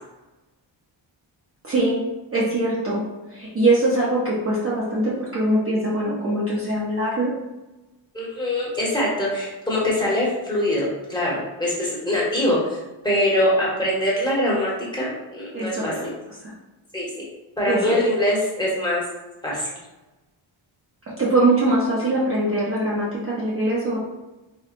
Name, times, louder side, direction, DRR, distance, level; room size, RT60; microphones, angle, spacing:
voice 1, 1.6-2.0 2.3-3.0 3.3-7.3 15.5-15.9 16.4-16.5 17.7-17.9 21.1-24.0, right 2 dB, 30° right, -6 dB, 0.5 m, -22 dB
voice 2, 8.1-15.9 16.9-17.3 17.6-19.0 19.4-19.7, left 1 dB, 10° left, -6 dB, 0.9 m, -23 dB
4.4 x 2.2 x 2.4 m, 1.1 s
wide cardioid pair, 165°, 47 cm